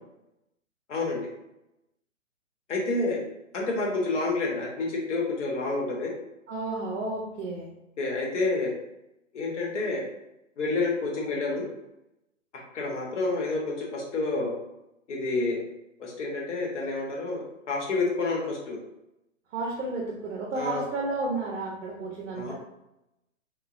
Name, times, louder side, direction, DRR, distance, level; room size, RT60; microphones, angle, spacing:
voice 1, 0.9-1.3 2.7-3.2 3.5-6.1 8.0-8.7 9.3-10.0 10.6-11.7 12.7-14.5 15.1-15.6 16.0-18.8 20.5-20.8 22.3-22.5, left 3 dB, 65° left, -1 dB, 1.0 m, -29 dB
voice 2, 6.5-7.7 19.5-22.5, right 2 dB, 65° right, -3 dB, 0.8 m, -32 dB
3.0 x 2.1 x 2.4 m, 0.89 s
hypercardioid pair, 165°, 39 cm